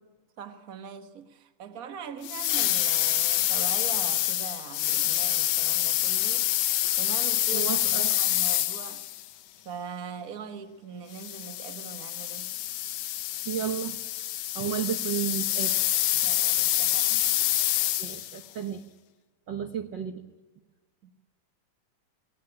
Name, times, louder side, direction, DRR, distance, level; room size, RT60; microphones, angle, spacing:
voice 1, 0.4-6.5 7.0-9.1 9.6-12.5 16.2-17.3 21.0-21.1, right 7 dB, 55° right, 1.0 m, -41 dB
sound 1, 2.2-9.3 11.1-18.4, left 13 dB, 70° left, 1.7 m, -27 dB
voice 2, 7.5-8.1 13.4-14.0 14.5-15.7 18.0-18.8 19.5-20.2, right 9 dB, 90° right, 0.9 m, -32 dB
19.5 x 19.0 x 10.0 m
omnidirectional pair, 3.7 m